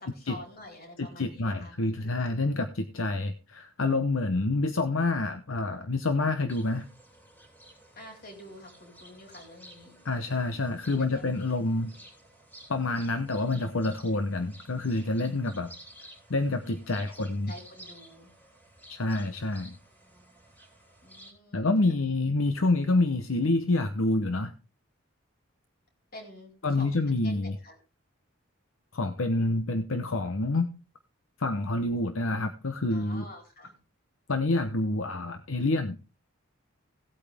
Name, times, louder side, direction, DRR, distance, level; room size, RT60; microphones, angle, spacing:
voice 1, 0.0-1.7 8.0-10.0 11.0-11.4 16.9-17.0 17.5-18.3 21.0-21.8 26.1-27.8 32.9-33.8, left 1 dB, 45° left, 1 dB, 4.4 m, -48 dB
voice 2, 1.0-6.9 10.0-11.9 12.7-15.7 16.3-17.5 18.9-19.7 21.5-24.5 26.6-27.6 28.9-30.7 31.4-33.2 34.3-36.0, left 2 dB, 75° left, 8 dB, 0.9 m, -27 dB
sound 1, 6.5-21.3, right 1 dB, 10° left, 3.1 m, -53 dB
17.0 x 8.5 x 3.5 m, 0.30 s
head